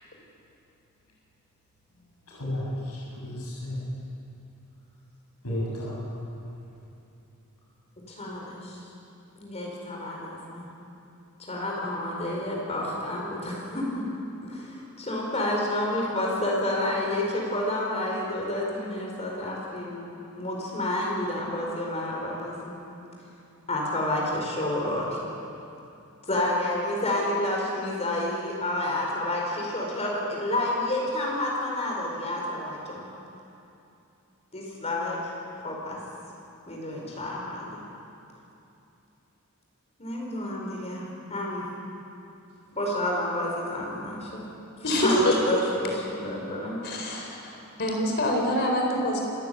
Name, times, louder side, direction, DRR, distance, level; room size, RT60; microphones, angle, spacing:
voice 1, 2.3-3.8 5.4-6.0, left 1 dB, 90° left, -5 dB, 7.6 m, -33 dB
voice 2, 8.1-8.8 9.4-10.7 11.4-14.0 14.4-22.7 23.7-25.2 26.3-33.0 34.5-35.2 35.6-36.0 36.7-37.8 40.0-41.6 42.8-44.4 44.8-46.8, left 1 dB, 30° left, -2 dB, 4.8 m, -29 dB
voice 3, 44.8-45.3 46.8-47.5 47.8-49.2, left 1 dB, 50° left, 1 dB, 4.4 m, -25 dB
28.0 x 15.0 x 9.4 m, 2.8 s
head